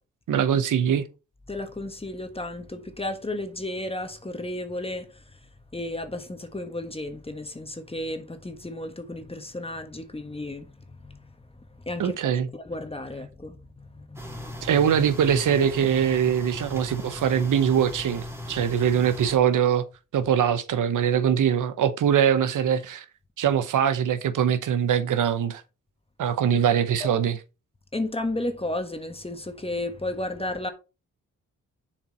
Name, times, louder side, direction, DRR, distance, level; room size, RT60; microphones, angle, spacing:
voice 1, 0.3-1.1 12.0-12.5 14.6-19.8 20.1-23.0 23.4-25.6 26.2-27.4, right 8 dB, 85° right, 0.9 m, -22 dB
voice 2, 1.5-14.7 27.0-27.1 27.9-30.7, left 1 dB, 20° left, 1.3 m, -34 dB
sound 1, 14.2-19.4, left 1 dB, 10° right, 1.8 m, -37 dB
7.3 x 4.5 x 4.2 m
cardioid pair, 85°, 31 cm